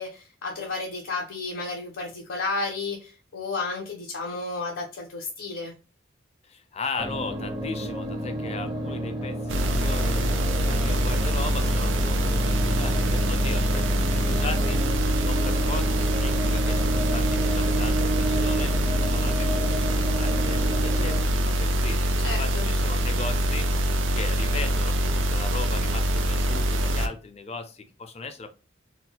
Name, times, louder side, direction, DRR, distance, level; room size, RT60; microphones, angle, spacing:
voice 1, 0.0-5.7 22.2-22.7, left 3 dB, 75° left, -1 dB, 0.7 m, -32 dB
voice 2, 6.4-10.3 10.6-22.1 22.4-23.7 24.1-28.5, left 4 dB, 30° left, 8 dB, 0.4 m, -37 dB
sound 1, 7.0-21.2, right 1 dB, 20° right, 0.8 m, -31 dB
sound 2, 9.5-27.1, equal, 65° right, 0.5 m, -24 dB
4.2 x 2.2 x 2.2 m, 0.33 s
head